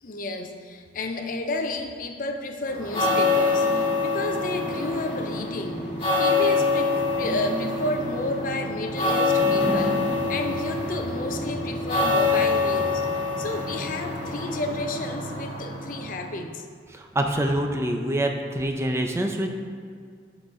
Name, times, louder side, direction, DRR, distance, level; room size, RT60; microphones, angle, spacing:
voice 1, 0.0-5.9 6.2-13.1 13.4-16.6, left 2 dB, 45° left, 5 dB, 0.5 m, -31 dB
sound 1, 2.7-16.3, left 3 dB, 30° left, 1.9 m, -25 dB
voice 2, 16.9-19.6, right 1 dB, 15° right, 3 dB, 0.5 m, -26 dB
11.5 x 4.1 x 3.7 m, 2.2 s
head